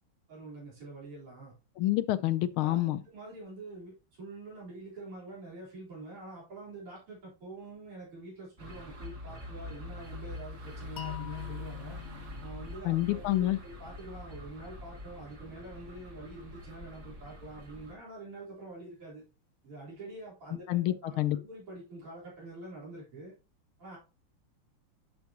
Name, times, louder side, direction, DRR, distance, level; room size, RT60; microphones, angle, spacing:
voice 1, 0.3-1.5 2.6-12.0 12.4-19.2 19.6-23.3 23.8-24.0, right 2 dB, 80° right, 4.9 m, -46 dB
voice 2, 1.8-3.0 12.8-13.6 20.7-21.4, left 15 dB, 80° left, 1.4 m, -28 dB
sound 1, 8.6-17.9, left 1 dB, 35° right, 1.9 m, -45 dB
sound 2, 11.0-13.9, left 11 dB, 50° left, 1.3 m, -44 dB
10.5 x 5.3 x 2.9 m
omnidirectional pair, 2.4 m